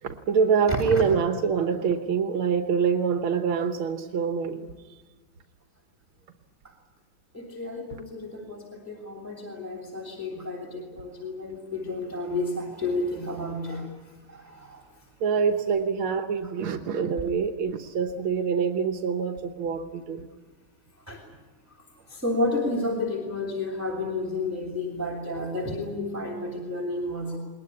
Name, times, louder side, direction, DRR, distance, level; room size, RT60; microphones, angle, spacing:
voice 1, 0.0-4.7 7.9-8.0 15.2-20.3, right 6 dB, 85° right, 6 dB, 2.1 m, -25 dB
voice 2, 0.7-1.0 6.6-6.7 7.3-13.9 14.3-14.8 21.1-21.2 22.1-27.4, left 2 dB, 5° right, 1 dB, 2.9 m, -31 dB
21.0 x 20.5 x 9.7 m, 1.3 s
omnidirectional pair, 2.2 m